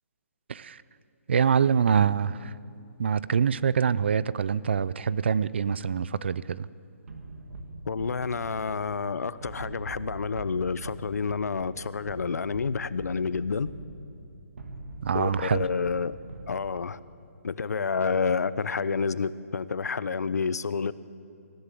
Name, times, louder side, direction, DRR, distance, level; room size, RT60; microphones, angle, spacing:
voice 1, 1.3-2.5 3.0-6.7 15.0-15.6, right 7 dB, 45° right, 0.5 m, -25 dB
sound 1, 7.1-17.0, right 2 dB, 60° right, 2.2 m, -43 dB
voice 2, 7.9-13.7 15.1-16.2 16.5-17.0 17.4-20.9, left 5 dB, 85° left, 0.8 m, -29 dB
25.0 x 15.5 x 7.7 m
hypercardioid pair, 175°, 8 cm